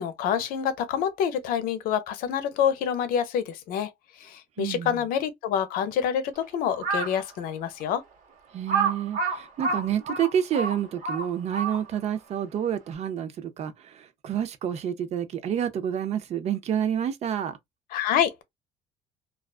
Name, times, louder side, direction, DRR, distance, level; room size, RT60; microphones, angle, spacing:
voice 1, 0.0-3.9 4.2-8.0 17.9-18.4, left 8 dB, 90° left, 0.6 m, -27 dB
voice 2, 4.6-5.0 8.5-17.6, right 9 dB, 50° right, 0.5 m, -29 dB
Crow, 6.7-7.2 7.8-7.9 8.7-12.1, right 4 dB, 65° right, 1.1 m, -28 dB
2.4 x 2.3 x 2.3 m
cardioid pair, 140°, 14 cm